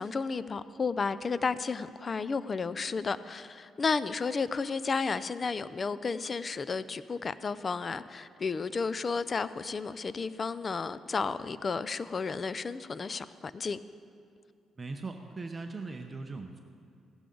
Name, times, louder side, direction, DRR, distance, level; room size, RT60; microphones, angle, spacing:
voice 1, 0.0-13.8, left 4 dB, 35° left, 15 dB, 0.4 m, -32 dB
voice 2, 14.8-16.6, right 3 dB, 30° right, 5 dB, 0.7 m, -39 dB
16.0 x 11.5 x 3.9 m, 2.5 s
cardioid pair, 90°, 0 cm